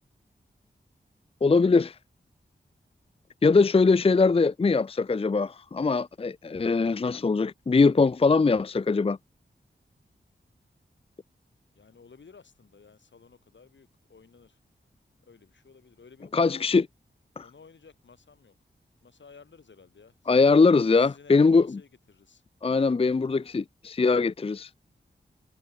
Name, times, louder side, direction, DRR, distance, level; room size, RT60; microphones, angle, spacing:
voice 1, 1.4-2.0 3.4-9.2 16.3-16.8 17.4-17.5 20.3-21.8 22.6-24.7, left 4 dB, 30° left, 0.5 m, -22 dB
voice 2, 11.7-14.6 15.2-16.8 17.4-18.6 19.0-20.5 21.0-22.4, left 5 dB, 80° left, 7.1 m, -54 dB
wide cardioid pair, 80°, 19 cm